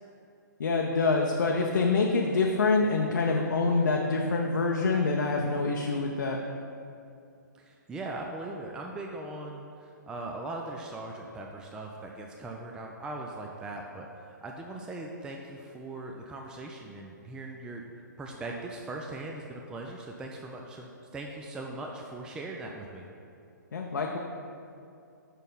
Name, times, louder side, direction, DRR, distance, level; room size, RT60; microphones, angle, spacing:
voice 1, 0.6-6.4 23.7-24.2, left 3 dB, 75° left, 0 dB, 0.6 m, -26 dB
voice 2, 7.5-17.8 18.2-23.1, right 2 dB, 10° right, 0 dB, 0.3 m, -40 dB
5.5 x 4.4 x 5.3 m, 2.5 s
hypercardioid pair, 130°, 10 cm